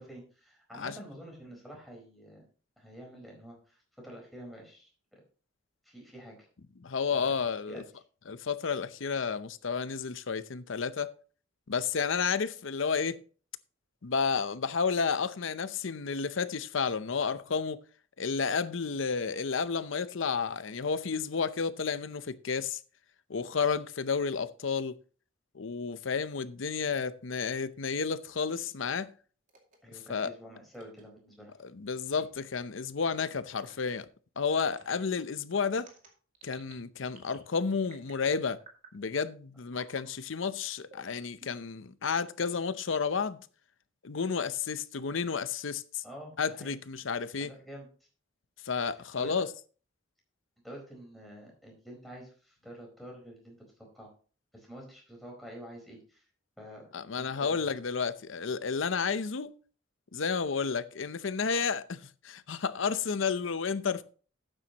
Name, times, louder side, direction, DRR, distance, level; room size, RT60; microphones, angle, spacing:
voice 1, 0.0-2.4 2.8-5.2 5.8-6.4 7.1-7.4 7.7-7.8 29.8-31.5 34.9-35.0 46.0-46.7 47.4-47.9 48.9-49.3 50.6-53.7 53.9-54.1 54.5-56.2 56.6-56.9 57.2-57.8, equal, ahead, 4.5 m, -48 dB
voice 2, 6.8-7.8 8.3-11.1 11.7-13.2 14.0-17.8 18.2-22.8 23.3-24.9 25.5-29.1 30.1-30.3 31.6-34.1 34.4-35.9 36.4-38.6 38.9-43.4 44.0-46.0 46.4-47.5 48.6-49.5 56.9-59.5 60.1-64.0, left 5 dB, 75° left, 0.7 m, -31 dB
sound 1, 29.5-29.8 30.7-31.0 32.1-32.4 33.6-33.9 34.5-34.8 35.7-36.7 37.1-37.5 37.8-38.2 38.6-39.0 39.7-40.0 40.8-41.7, right 3 dB, 40° right, 2.4 m, -55 dB
12.5 x 9.0 x 2.9 m
head